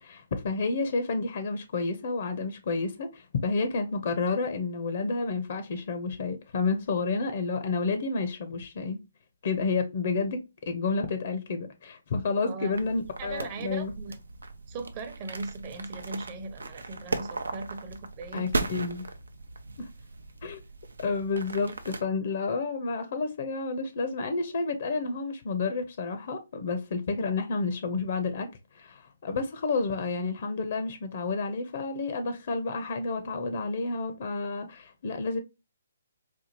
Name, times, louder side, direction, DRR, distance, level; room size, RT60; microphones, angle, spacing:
voice 1, 0.0-9.0 9.4-13.9 18.3-19.0 19.8-19.9 20.4-20.6 21.0-28.5 28.7-35.4, left 4 dB, 55° left, 0.6 m, -30 dB
sound 1, 12.7-22.0, right 3 dB, 85° right, 0.5 m, -37 dB
voice 2, 13.2-14.2 14.7-18.7, right 3 dB, 30° right, 0.7 m, -39 dB
4.3 x 2.4 x 2.8 m
hypercardioid pair, 145°, 0 cm